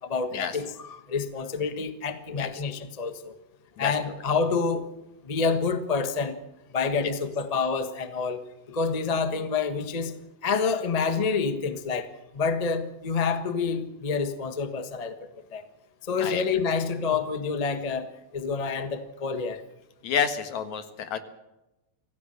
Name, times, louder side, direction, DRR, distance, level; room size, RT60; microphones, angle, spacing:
voice 1, 0.0-3.3 3.8-4.8 5.2-6.4 6.7-10.1 10.4-12.1 12.3-15.2 15.5-15.6 16.1-19.6, left 5 dB, 35° left, 9 dB, 0.6 m, -28 dB
voice 2, 20.0-21.2, left 7 dB, 75° left, 9 dB, 2.9 m, -29 dB
25.5 x 16.0 x 6.6 m, 0.97 s
omnidirectional pair, 3.4 m